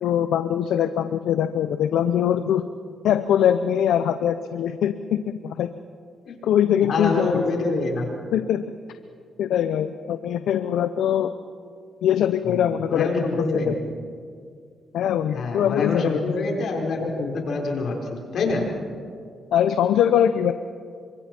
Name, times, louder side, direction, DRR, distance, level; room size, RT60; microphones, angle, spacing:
voice 1, 0.0-2.7 3.0-5.2 5.4-5.7 6.4-7.4 8.3-8.6 9.4-11.3 12.0-13.8 14.9-16.2 19.5-20.5, left 10 dB, 90° left, 10 dB, 0.6 m, -22 dB
voice 2, 6.9-8.1 12.4-12.6 12.9-13.9 15.3-18.7, left 3 dB, 70° left, 1 dB, 4.4 m, -26 dB
28.0 x 24.5 x 4.4 m, 2.2 s
cardioid pair, 85°, 0 cm